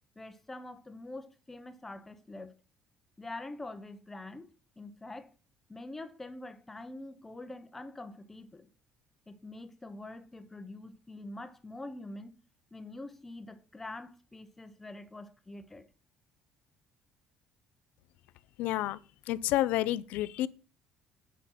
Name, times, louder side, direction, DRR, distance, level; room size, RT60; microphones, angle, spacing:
voice 1, 0.2-2.6 3.2-4.5 4.8-5.3 5.7-8.7 9.3-12.4 12.7-15.9, left 2 dB, 10° left, 0.7 m, -45 dB
voice 2, 18.6-19.0 19.3-20.5, left 15 dB, 75° left, 0.5 m, -29 dB
8.7 x 5.1 x 5.7 m
cardioid pair, 170°, 3 cm